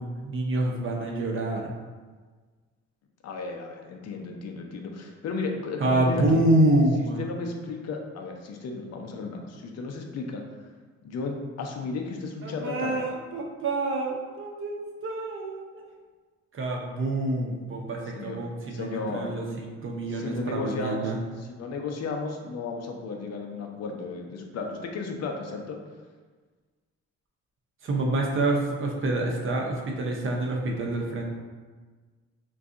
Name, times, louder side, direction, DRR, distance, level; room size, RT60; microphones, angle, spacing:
voice 1, 0.0-1.7 5.8-7.3 12.4-15.6 16.5-21.2 27.8-31.3, right 2 dB, 45° right, 0 dB, 0.6 m, -27 dB
voice 2, 3.2-6.4 7.2-10.4 11.0-12.9 18.1-18.4 18.7-19.3 20.1-21.1 21.5-25.8, left 3 dB, 60° left, 2 dB, 0.6 m, -34 dB
2.6 x 2.3 x 3.6 m, 1.4 s
cardioid pair, 90°, 30 cm